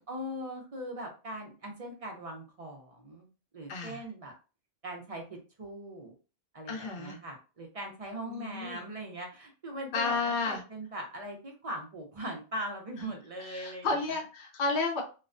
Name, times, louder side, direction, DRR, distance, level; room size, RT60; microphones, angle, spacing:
voice 1, 0.1-3.3 3.5-4.3 4.8-6.1 6.5-14.2, right 1 dB, 45° right, 2 dB, 0.5 m, -40 dB
voice 2, 3.7-4.0 6.7-7.2 8.3-8.8 9.9-10.6 13.4-15.0, left 3 dB, 55° left, -1 dB, 0.7 m, -32 dB
2.3 x 2.1 x 2.4 m, 0.33 s
omnidirectional pair, 1.1 m